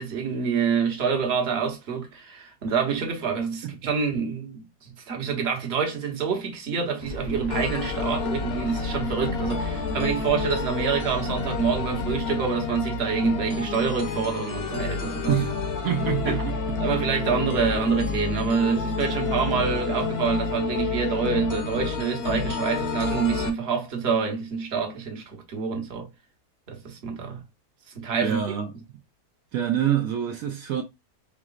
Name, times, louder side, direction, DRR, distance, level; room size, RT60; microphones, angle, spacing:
voice 1, 0.0-15.3 16.3-16.5 16.8-26.1 26.7-27.4 27.9-28.4, right 6 dB, 45° right, 1.2 m, -27 dB
sound 1, 7.0-12.2, left 2 dB, 85° left, 1.2 m, -36 dB
sound 2, 7.5-23.5, left 5 dB, 50° left, 0.9 m, -29 dB
voice 2, 15.8-16.8 28.2-28.7 29.5-30.8, right 10 dB, 75° right, 1.0 m, -26 dB
4.7 x 3.1 x 2.4 m
omnidirectional pair, 1.6 m